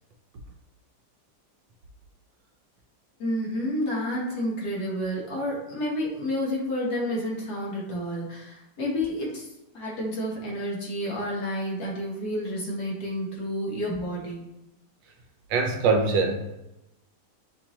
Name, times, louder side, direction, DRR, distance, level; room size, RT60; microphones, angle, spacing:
voice 1, 3.2-9.5 9.7-14.5, equal, 60° left, -3 dB, 1.6 m, -30 dB
voice 2, 15.5-16.6, right 4 dB, 75° right, 4 dB, 1.3 m, -23 dB
6.8 x 2.5 x 2.9 m, 0.92 s
omnidirectional pair, 2.0 m